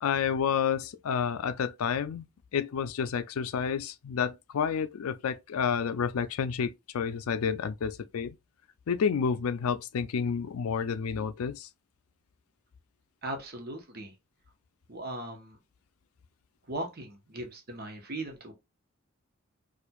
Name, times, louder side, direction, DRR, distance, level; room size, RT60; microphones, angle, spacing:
voice 1, 0.0-2.3 2.5-8.4 8.9-11.7, left 7 dB, 90° left, 0.4 m, -30 dB
voice 2, 13.2-14.1 14.9-15.6 16.7-18.5, right 1 dB, 50° right, 1.0 m, -38 dB
4.4 x 2.4 x 2.3 m
head